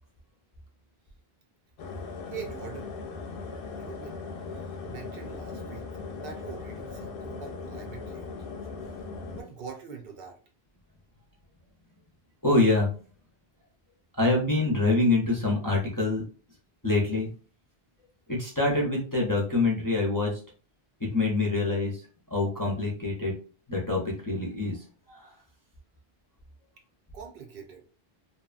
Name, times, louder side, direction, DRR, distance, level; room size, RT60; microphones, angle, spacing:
sound 1, 1.8-9.4, left 4 dB, 65° left, 0.7 m, -39 dB
voice 1, 2.3-2.9 3.8-4.2 4.6-5.9 6.1-8.3 9.3-10.4 27.1-27.8, right 6 dB, 70° right, 2 dB, 0.8 m, -43 dB
voice 2, 12.4-12.9 14.2-16.2 16.8-17.3 18.3-20.4 21.0-23.3 23.7-25.3, left 2 dB, 25° left, -4 dB, 0.5 m, -26 dB
2.7 x 2.2 x 2.4 m, 0.40 s
omnidirectional pair, 1.0 m